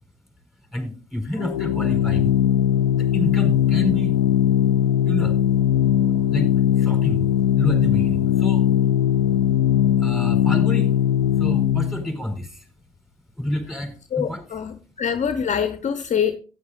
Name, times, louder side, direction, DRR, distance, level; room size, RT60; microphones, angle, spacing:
voice 1, 0.7-2.3 2.9-4.2 5.0-5.4 6.3-7.3 7.6-8.7 10.0-10.9 11.3-12.7 13.4-14.4, left 1 dB, ahead, 4.9 m, -29 dB
Organ, 1.4-12.1, left 10 dB, 80° left, 0.6 m, -19 dB
voice 2, 14.1-16.3, left 7 dB, 40° left, 0.9 m, -24 dB
15.0 x 9.4 x 2.5 m
hypercardioid pair, 50°, 19 cm